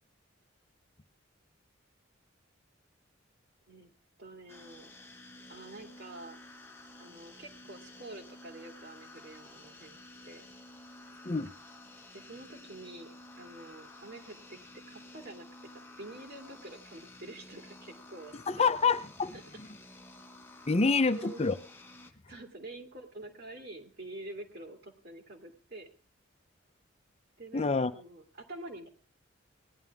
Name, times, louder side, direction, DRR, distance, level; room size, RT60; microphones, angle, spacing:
voice 1, 4.2-4.9 5.5-6.4 7.0-10.4 12.1-18.7 19.3-19.4 21.1-21.4 22.3-25.9 27.4-28.9, right 2 dB, 55° right, 3 dB, 2.4 m, -47 dB
sound 1, 4.5-22.1, left 2 dB, 10° left, 1.0 m, -52 dB
voice 2, 18.5-19.7 20.7-21.5 27.5-27.9, left 4 dB, 30° left, 11 dB, 0.7 m, -27 dB
18.0 x 11.0 x 3.5 m, 0.38 s
head